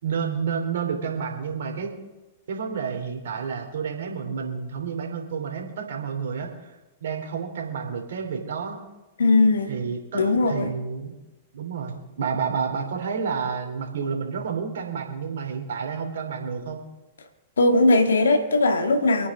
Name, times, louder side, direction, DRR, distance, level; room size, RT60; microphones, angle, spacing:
voice 1, 0.0-1.9 2.5-6.7 7.0-8.8 9.7-11.1 11.5-16.8, right 6 dB, 70° right, 2 dB, 3.3 m, -30 dB
voice 2, 9.2-9.7 10.1-10.7 17.6-19.3, left 2 dB, 80° left, 6 dB, 1.9 m, -19 dB
27.0 x 9.3 x 3.7 m, 1.0 s
hypercardioid pair, 110°, 0 cm